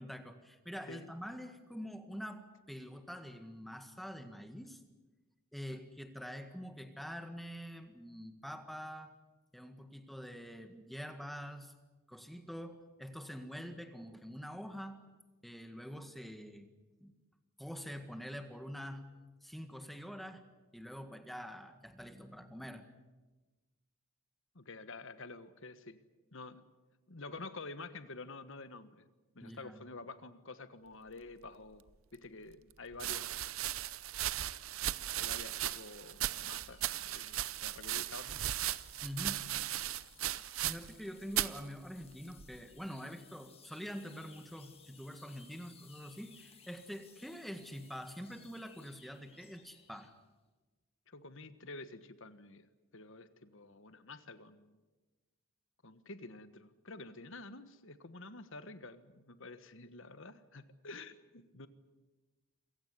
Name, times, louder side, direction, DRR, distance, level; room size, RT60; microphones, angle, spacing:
voice 1, 0.0-4.8 5.5-9.1 9.5-11.7 12.1-15.0 15.4-16.7 17.0-17.1 17.6-19.1 19.4-20.4 20.7-22.9 29.4-29.8 39.0-39.7 40.6-50.1, equal, ahead, 8 dB, 1.7 m, -45 dB
voice 2, 24.5-26.0 26.3-26.6 27.1-29.1 29.3-33.6 35.1-38.4 51.1-54.8 55.8-61.7, left 3 dB, 60° left, 12 dB, 1.4 m, -49 dB
sound 1, 31.9-32.0 32.9-41.0 41.3-41.6 42.4-42.8, right 13 dB, 70° right, 0.7 m, -37 dB
sound 2, 36.4-50.2, left 7 dB, 25° left, 1.9 m, -61 dB
27.5 x 16.5 x 9.6 m, 1.2 s
head